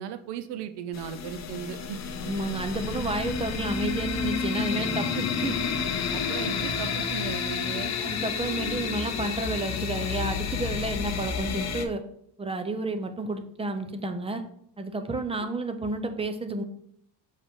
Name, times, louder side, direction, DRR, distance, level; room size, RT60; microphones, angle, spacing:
voice 1, 0.0-2.1 6.1-7.9, right 9 dB, 85° right, 9 dB, 0.6 m, -36 dB
sound 1, 0.9-11.9, left 6 dB, 40° left, 0.8 m, -30 dB
voice 2, 2.2-5.6 8.0-12.0 12.4-14.4 14.8-16.6, right 2 dB, 15° right, 8 dB, 0.7 m, -31 dB
6.7 x 5.2 x 3.7 m, 0.70 s
cardioid pair, 140°, 40 cm